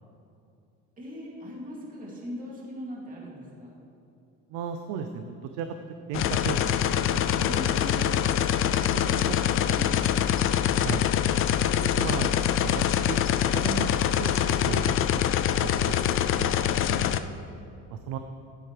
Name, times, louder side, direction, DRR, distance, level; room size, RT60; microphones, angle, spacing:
voice 1, 1.0-3.7 7.3-8.2 8.6-10.3 16.8-17.2, equal, 25° right, -5 dB, 2.8 m, -40 dB
voice 2, 4.5-5.7 6.1-7.2 8.9-9.0 10.7-11.1 11.8-12.3 12.6-13.2 13.5-13.9 14.2-16.6 17.9-18.2, right 7 dB, 85° right, 7 dB, 0.6 m, -35 dB
sound 1, 6.1-17.2, left 10 dB, 45° left, 0.4 m, -24 dB
12.0 x 10.5 x 3.4 m, 2.5 s
cardioid pair, 115°, 31 cm